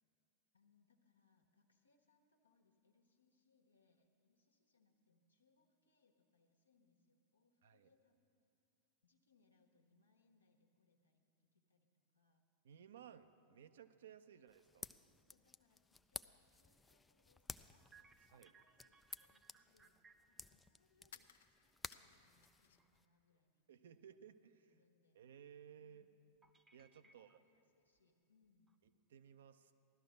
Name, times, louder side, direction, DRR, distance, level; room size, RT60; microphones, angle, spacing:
voice 1, 0.5-8.5 9.0-12.4 14.3-14.5 15.3-20.0 20.2-21.3 21.6-24.1 24.7-25.2 25.8-26.2 27.0-28.8, left 4 dB, 80° left, 3 dB, 1.4 m, -78 dB
voice 2, 12.6-14.9 18.3-18.5 23.7-24.8 25.1-26.1 26.7-27.4 28.8-29.7, right 8 dB, 60° right, 10 dB, 0.6 m, -59 dB
sound 1, 14.5-23.0, left 3 dB, 10° left, 0.4 m, -55 dB
sound 2, 17.8-20.5 22.4-22.5 22.8-23.2 26.4-27.6 28.0-28.1 28.7-29.1, right 5 dB, 15° right, 0.8 m, -68 dB
sound 3, 21.1-23.0 23.3-24.1, left 9 dB, 60° left, 0.5 m, -64 dB
16.0 x 12.5 x 6.4 m, 2.7 s
figure-of-eight pair, 90°, 0 cm